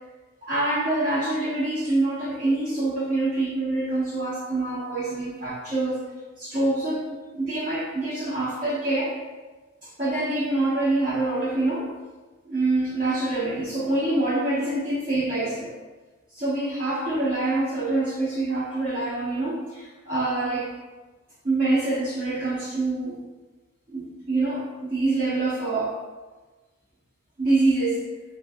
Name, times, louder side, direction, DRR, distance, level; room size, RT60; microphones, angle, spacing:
voice 1, 0.4-6.0 6.4-9.2 9.8-11.9 12.4-15.7 16.3-20.7 21.4-23.2 23.9-26.0 27.4-28.0, right 2 dB, 40° right, -9 dB, 0.9 m, -25 dB
6.1 x 3.2 x 2.4 m, 1.2 s
head